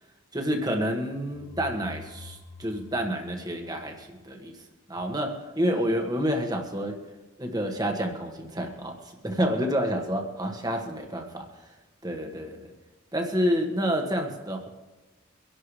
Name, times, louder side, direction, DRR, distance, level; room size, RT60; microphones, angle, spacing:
voice 1, 0.3-7.0 7.4-11.7 12.0-12.7 13.1-14.7, equal, 20° right, 1.6 m, -29 dB
sound 1, 1.3-4.2, left 4 dB, 60° left, 3.9 m, -46 dB
25.0 x 11.5 x 3.3 m
head